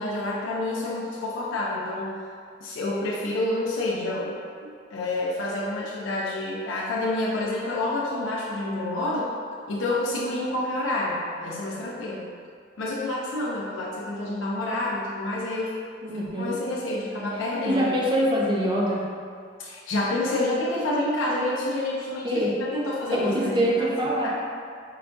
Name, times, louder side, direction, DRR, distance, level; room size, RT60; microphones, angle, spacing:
voice 1, 0.0-2.2 2.6-9.3 9.7-12.2 12.8-15.7 16.4-17.8 19.6-23.9 24.2-24.3, left 2 dB, 90° left, -5 dB, 0.5 m, -28 dB
voice 2, 16.0-16.6 17.6-19.0 22.2-22.5 23.1-24.3, equal, 25° right, -4 dB, 0.5 m, -24 dB
4.7 x 2.2 x 2.5 m, 2.2 s
head